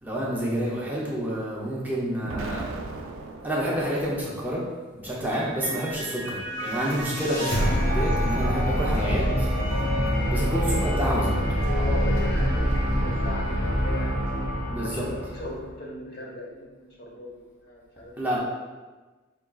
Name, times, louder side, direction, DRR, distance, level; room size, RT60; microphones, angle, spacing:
voice 1, 0.0-2.6 3.4-4.6 4.9-7.6 7.9-9.5 10.3-11.4 14.7-15.0 18.2-18.4, right 1 dB, 10° right, -5 dB, 0.6 m, -28 dB
Explosion, 2.2-4.4, right 2 dB, 70° right, 0.4 m, -37 dB
Mallet percussion, 5.3-13.1, equal, 55° right, 1.1 m, -35 dB
sound 1, 6.5-15.6, equal, 80° left, 1.1 m, -25 dB
voice 2, 11.7-17.3 17.6-18.2, left 1 dB, 50° left, -2 dB, 0.9 m, -38 dB
4.7 x 3.6 x 2.3 m, 1.3 s
head